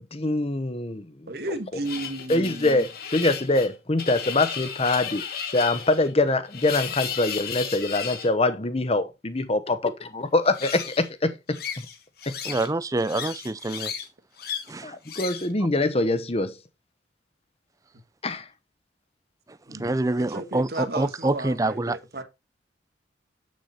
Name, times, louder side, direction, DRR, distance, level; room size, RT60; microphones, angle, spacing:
voice 1, 0.0-1.3 2.3-5.2 5.5-9.8 10.3-11.9 12.3-12.4 14.8-16.6 18.2-18.5, left 2 dB, 30° left, 0.9 m, -24 dB
voice 2, 1.3-2.8 19.7-19.9 20.3-22.2, right 2 dB, 55° right, 1.5 m, -33 dB
sound 1, 1.8-8.3 10.4-11.1 11.5-12.7 13.0-14.1 14.4-14.7 15.0-15.5, left 8 dB, 55° left, 1.4 m, -34 dB
voice 3, 12.4-13.9 14.7-15.0 19.5-22.0, right 2 dB, 20° right, 0.4 m, -26 dB
8.2 x 6.5 x 4.2 m
head